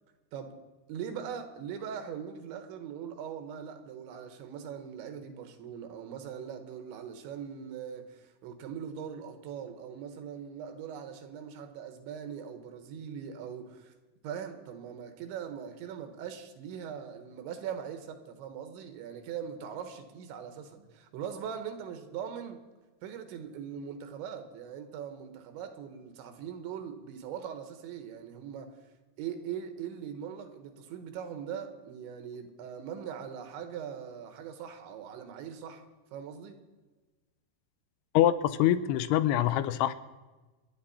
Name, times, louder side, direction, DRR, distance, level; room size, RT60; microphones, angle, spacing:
voice 1, 0.9-13.9 14.2-22.6 23.0-28.7 29.2-36.6, right 8 dB, 90° right, 7 dB, 3.7 m, -41 dB
voice 2, 38.1-39.9, left 12 dB, 85° left, 14 dB, 2.4 m, -25 dB
27.5 x 10.0 x 4.3 m, 1.2 s
omnidirectional pair, 5.1 m